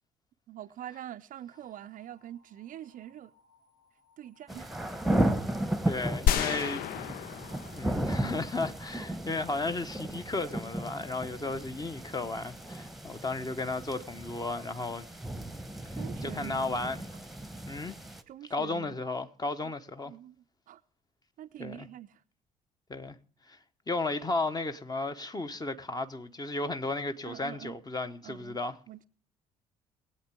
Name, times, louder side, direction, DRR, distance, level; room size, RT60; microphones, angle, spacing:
voice 1, 0.5-3.3 4.2-4.7 16.0-16.8 18.3-19.0 20.0-20.3 20.7-20.8 21.4-22.2 27.2-27.8 28.2-28.6 28.9-29.1, right 12 dB, 45° right, 0.5 m, -44 dB
sound 1, 1.5-13.7, left 3 dB, 75° left, 6.6 m, -67 dB
sound 2, 4.5-18.2, right 1 dB, ahead, 1.1 m, -35 dB
voice 2, 5.8-7.3 7.8-15.1 16.2-17.0 17.7-18.0 18.5-20.1 21.6-21.9 22.9-23.2 23.5-23.6 23.9-28.8, left 3 dB, 20° left, 1.0 m, -34 dB
sound 3, 6.3-8.5, left 10 dB, 50° left, 0.5 m, -31 dB
20.5 x 8.7 x 3.6 m
figure-of-eight pair, 45°, 19 cm